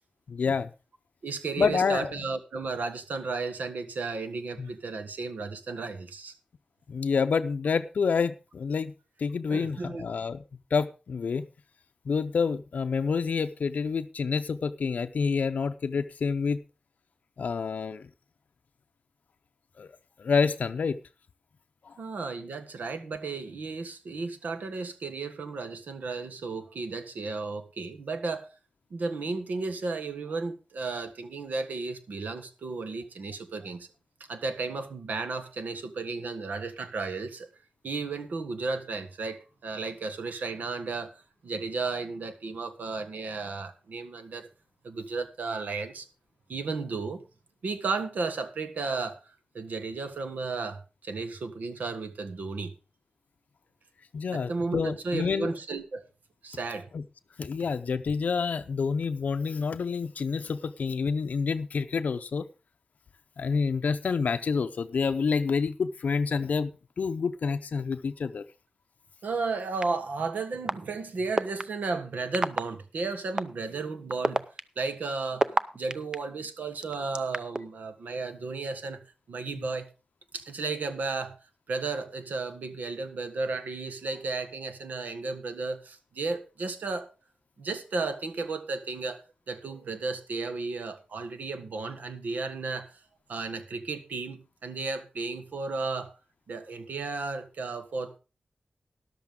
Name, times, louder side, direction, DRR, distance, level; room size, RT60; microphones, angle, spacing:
voice 1, 0.3-0.7 1.6-2.1 4.6-4.7 6.9-8.9 9.2-10.4 10.7-11.5 12.1-16.6 17.4-18.1 19.8-19.9 20.2-21.0 21.9-22.0 54.1-55.5 56.9-57.0 57.4-62.5 63.4-66.7 67.0-68.4, left 5 dB, 70° left, 0.5 m, -28 dB
voice 2, 1.2-6.3 9.5-10.0 22.0-28.5 28.9-33.9 34.3-37.5 37.8-41.1 41.4-44.5 44.8-46.1 46.5-47.2 47.6-49.2 49.5-52.7 54.3-56.0 56.4-56.9 69.2-74.4 74.8-79.0 79.3-79.8 80.3-81.4 81.7-87.1 87.6-92.9 93.3-96.1 96.5-98.2, right 4 dB, 85° right, 1.5 m, -34 dB
sound 1, 69.8-69.9 70.7-70.8 71.4-71.6 72.3-72.6 73.4-73.5 74.1-76.2 76.8-77.6, right 2 dB, 30° right, 0.6 m, -25 dB
13.5 x 11.5 x 3.7 m
wide cardioid pair, 145°, 3 cm